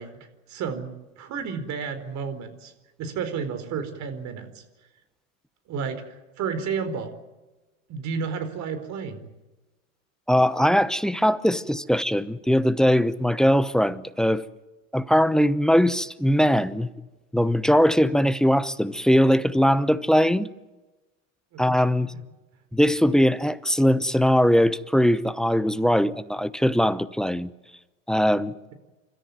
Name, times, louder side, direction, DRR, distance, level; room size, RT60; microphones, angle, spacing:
voice 1, 0.0-2.7 3.0-4.6 5.7-7.1 7.9-9.2 21.5-21.6 22.0-22.2, right 6 dB, 45° right, 4.5 m, -32 dB
voice 2, 10.3-14.4 14.9-16.9 17.3-20.5 21.6-22.1 22.7-27.5 28.1-28.5, equal, ahead, 0.8 m, -21 dB
30.0 x 14.0 x 9.4 m
hypercardioid pair, 100°, 40 cm